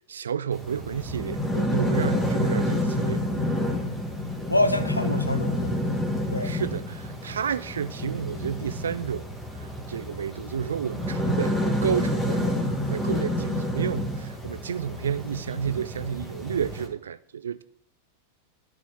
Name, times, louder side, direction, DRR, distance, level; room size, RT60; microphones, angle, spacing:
voice 1, 0.1-3.2 6.4-12.4 12.9-17.6, right 8 dB, 65° right, 0.5 m, -31 dB
sound 1, 0.5-16.9, left 1 dB, 5° left, 1.8 m, -29 dB
voice 2, 4.5-6.1 6.3-6.6, left 2 dB, 85° left, 0.9 m, -26 dB
13.0 x 5.0 x 4.6 m
figure-of-eight pair, 90°, 0 cm